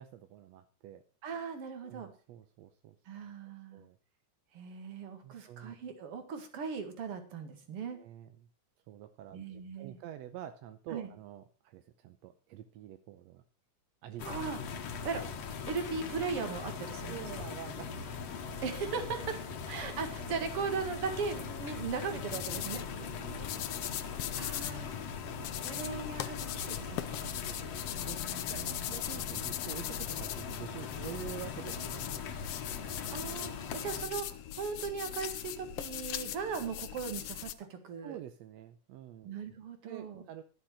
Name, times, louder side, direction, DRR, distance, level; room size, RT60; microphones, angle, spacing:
voice 1, 0.0-1.0 1.8-3.0 3.7-4.0 5.2-5.8 7.9-8.4 8.9-13.4 14.0-14.3 17.0-18.1 18.4-18.7 20.2-20.3 22.7-24.4 25.0-25.5 27.1-28.2 28.5-32.2 34.0-34.2 38.0-39.4 39.8-40.4, right 11 dB, 75° right, 9 dB, 1.7 m, -48 dB
voice 2, 1.2-2.1 3.1-3.8 4.5-8.0 9.3-10.0 10.9-11.1 14.2-14.6 15.0-15.2 15.5-17.2 18.6-19.4 19.7-22.8 24.4-25.0 25.6-27.3 28.3-28.4 33.1-38.2 39.2-40.2, right 5 dB, 50° right, 7 dB, 2.5 m, -38 dB
sound 1, 14.2-34.0, left 6 dB, 60° left, 2.1 m, -41 dB
sound 2, 22.3-37.5, left 12 dB, 80° left, 1.3 m, -40 dB
12.5 x 7.4 x 6.3 m, 0.38 s
omnidirectional pair, 3.6 m